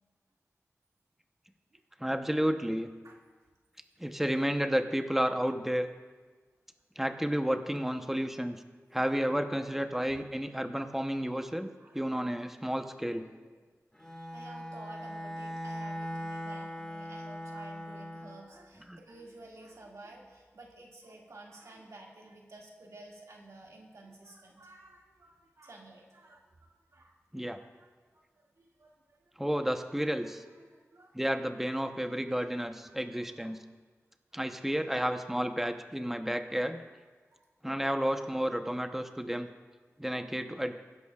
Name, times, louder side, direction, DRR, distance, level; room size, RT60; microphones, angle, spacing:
voice 1, 2.0-2.9 4.0-5.9 7.0-8.6 8.9-11.7 11.9-13.3 18.9-19.0 27.3-27.6 29.4-30.4 31.1-33.6 34.3-36.8 37.6-39.5 40.0-40.7, equal, 5° right, 6 dB, 0.8 m, -31 dB
voice 2, 11.8-12.1 12.6-12.8 13.1-13.7 14.0-27.2 27.5-29.3 30.4-31.2 32.9-33.5 34.5-34.6 37.3-37.4, right 2 dB, 80° right, -2 dB, 2.1 m, -53 dB
Bowed string instrument, 13.9-18.5, equal, 15° left, 1.8 m, -40 dB
22.0 x 11.0 x 2.4 m, 1.4 s
wide cardioid pair, 85°, 5 cm